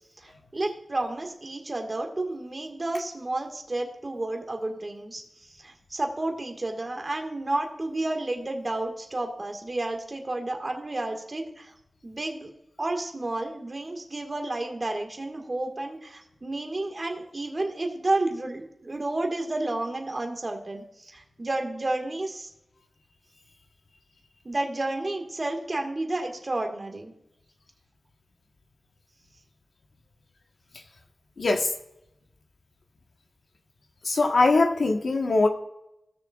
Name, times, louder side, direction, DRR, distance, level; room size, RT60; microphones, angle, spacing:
voice 1, 0.2-5.2 5.5-11.7 12.0-12.5 12.8-22.5 24.5-27.1, right 2 dB, 35° right, 3 dB, 1.9 m, -31 dB
voice 2, 31.4-31.7 34.0-35.5, left 3 dB, 70° left, 3 dB, 1.4 m, -21 dB
17.5 x 6.6 x 2.5 m, 0.84 s
wide cardioid pair, 90°, 0 cm